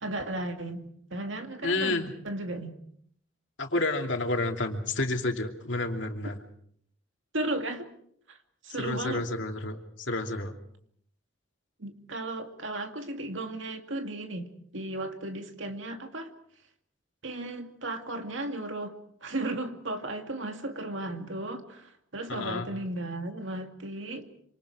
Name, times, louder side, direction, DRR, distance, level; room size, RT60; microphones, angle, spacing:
voice 1, 0.0-2.8 7.3-7.9 8.3-8.4 8.6-9.3 11.8-16.3 17.2-24.3, right 2 dB, 70° right, 6 dB, 2.4 m, -35 dB
voice 2, 1.6-2.1 3.6-6.4 8.8-10.5 22.3-22.7, left 2 dB, 65° left, 3 dB, 2.8 m, -30 dB
27.5 x 26.5 x 4.9 m, 0.65 s
head